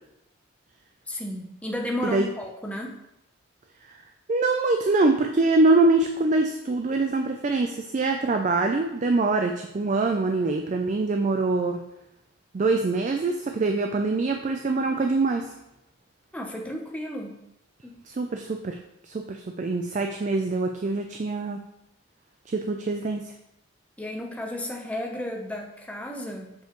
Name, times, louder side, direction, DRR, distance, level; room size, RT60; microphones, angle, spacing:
voice 1, 1.1-2.9 16.3-17.4 17.8-18.0 24.0-26.5, left 1 dB, 5° left, 0 dB, 0.7 m, -33 dB
voice 2, 4.3-11.8 12.5-15.5 18.1-18.8 19.0-21.6 22.5-23.3, right 3 dB, 35° right, 4 dB, 0.3 m, -24 dB
7.0 x 5.3 x 3.0 m, 0.85 s
head